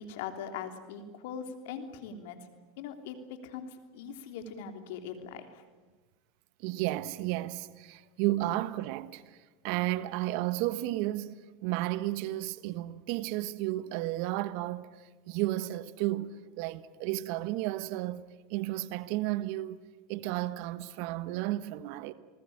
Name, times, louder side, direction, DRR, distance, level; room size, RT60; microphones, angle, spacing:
voice 1, 0.0-2.4 2.8-3.2 3.4-5.6, left 7 dB, 70° left, 3.3 m, -41 dB
voice 2, 6.6-9.4 9.6-11.3 11.6-14.9 15.3-19.8 20.1-22.1, right 16 dB, 60° right, 1.3 m, -33 dB
28.5 x 20.0 x 8.7 m
hypercardioid pair, 95°, 0 cm